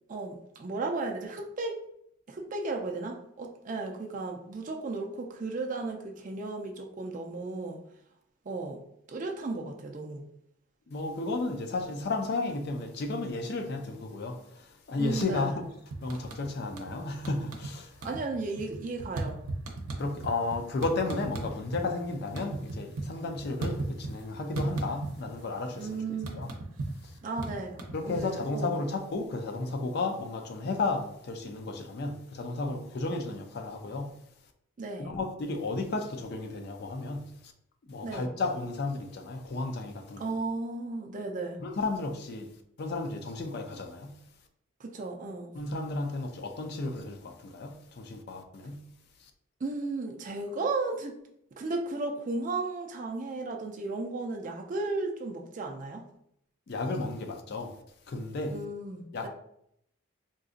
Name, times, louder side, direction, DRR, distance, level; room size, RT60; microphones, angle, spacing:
voice 1, 0.1-1.8 2.3-7.8 8.5-8.8 9.1-10.2 15.0-15.6 18.0-19.4 25.7-26.3 27.2-28.8 34.8-35.1 38.0-38.3 40.2-41.6 44.8-45.5 49.6-51.2 51.6-56.1 58.5-59.3, right 3 dB, 35° right, 0.4 m, -35 dB
voice 2, 10.9-18.0 20.0-26.0 26.3-26.5 27.9-34.2 35.0-37.5 37.9-40.3 41.6-42.5 42.8-44.2 45.5-48.9 49.2-49.3 56.7-57.7 58.1-58.6 59.1-59.3, left 3 dB, 50° left, 0.4 m, -33 dB
sound 1, 15.1-15.6 15.9-16.9 17.2-17.7 18.0-21.8 22.1-24.2 24.6-25.4 25.7-28.6, right 2 dB, 90° right, 0.6 m, -36 dB
3.8 x 2.5 x 2.4 m
head